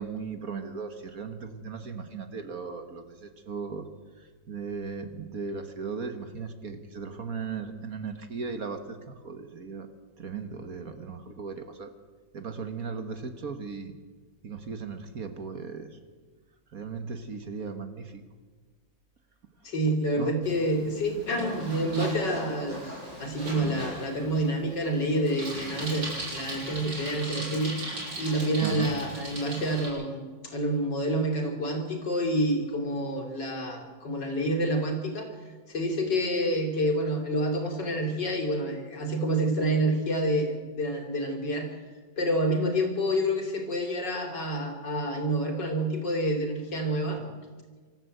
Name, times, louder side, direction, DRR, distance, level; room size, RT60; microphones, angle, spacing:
voice 1, 0.0-3.8 4.5-9.9 10.2-11.9 12.3-13.9 14.4-15.9 16.7-18.1 20.2-20.4 28.6-29.0, right 5 dB, 50° right, 8 dB, 1.7 m, -37 dB
voice 2, 19.6-27.7 28.2-35.3 35.7-41.7 42.2-47.3, right 1 dB, 65° left, 3 dB, 3.7 m, -28 dB
Bicycle, 20.4-29.9, right 1 dB, 70° right, 8.1 m, -38 dB
25.0 x 14.0 x 7.9 m, 1.4 s
omnidirectional pair, 2.1 m